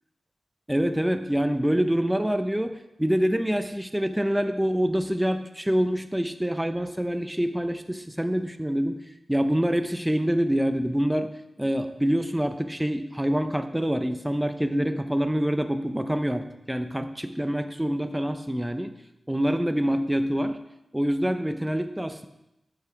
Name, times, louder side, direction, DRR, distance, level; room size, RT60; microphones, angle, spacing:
voice 1, 0.7-9.0 9.3-11.3 11.6-18.9 19.3-20.6 20.9-22.3, equal, 5° right, 8 dB, 0.6 m, -26 dB
13.5 x 6.0 x 4.5 m, 0.89 s
wide cardioid pair, 105°, 0 cm